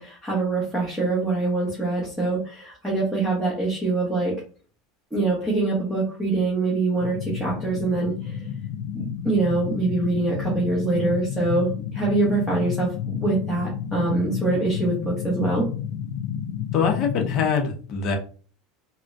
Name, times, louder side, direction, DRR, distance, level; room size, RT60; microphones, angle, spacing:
voice 1, 0.0-4.4 5.1-8.5 8.9-15.7, right 3 dB, ahead, -7 dB, 1.0 m, -24 dB
sound 1, 7.0-17.5, left 9 dB, 80° left, 0.4 m, -31 dB
voice 2, 16.7-18.2, left 6 dB, 45° left, 3 dB, 0.8 m, -23 dB
3.4 x 2.1 x 2.6 m, 0.39 s
supercardioid pair, 150°, 0 cm